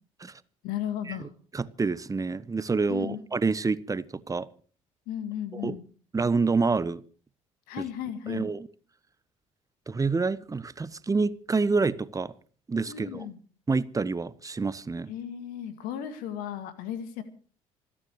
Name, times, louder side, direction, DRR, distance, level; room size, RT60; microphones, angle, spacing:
voice 1, 0.6-1.3 2.9-3.2 5.1-5.8 7.7-8.5 12.9-13.4 15.1-17.2, left 10 dB, 65° left, 2.2 m, -35 dB
voice 2, 1.5-4.5 5.5-5.8 6.1-7.0 7.8-7.9 8.3-8.7 9.9-12.3 12.7-13.3 13.7-15.1, right 4 dB, 20° right, 1.2 m, -28 dB
27.0 x 10.0 x 4.9 m
figure-of-eight pair, 55°, 16 cm